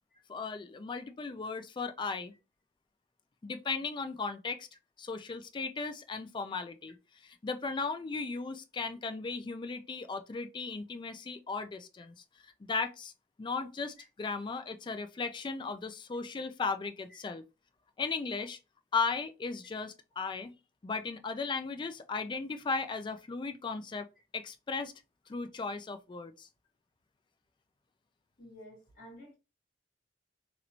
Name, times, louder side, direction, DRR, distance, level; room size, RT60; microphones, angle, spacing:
voice 1, 0.3-2.3 3.4-4.7 5.0-7.0 7.2-12.2 12.6-13.1 13.4-17.4 18.0-18.6 18.9-20.5 20.8-24.1 24.3-24.9 25.3-26.5, left 4 dB, 25° left, 0.3 m, -36 dB
voice 2, 28.4-29.3, equal, 50° left, 2.0 m, -51 dB
3.0 x 3.0 x 2.5 m
head